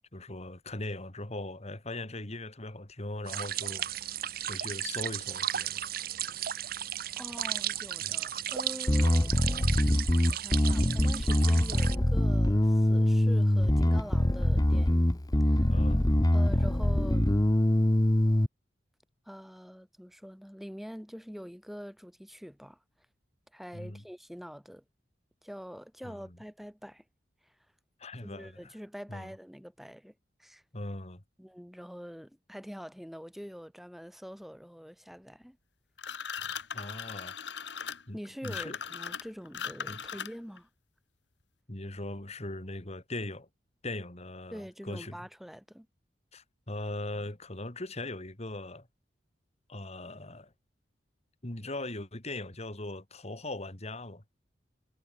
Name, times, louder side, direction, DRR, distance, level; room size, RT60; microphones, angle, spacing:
voice 1, 0.1-4.2 4.5-5.8 8.0-8.2 15.7-16.1 23.7-24.0 26.0-26.4 28.0-28.7 29.1-29.3 30.7-31.2 36.7-37.3 38.1-38.8 39.9-40.0 41.7-43.5 43.8-45.2 46.3-48.9 49.7-50.5 51.4-54.2, left 2 dB, 35° left, 2.5 m, -40 dB
sound 1, 3.3-12.0, right 11 dB, 55° right, 1.1 m, -35 dB
voice 2, 7.2-9.3 10.3-15.2 15.4-15.7 16.3-17.3 19.3-22.8 23.5-24.8 25.4-27.0 28.2-30.1 30.4-30.6 31.4-35.6 38.1-40.7 44.5-45.9, equal, ahead, 4.0 m, -45 dB
Bass guitar, 8.9-18.5, left 1 dB, 20° left, 0.9 m, -24 dB
sound 2, 36.0-40.6, left 7 dB, 70° left, 1.8 m, -39 dB
head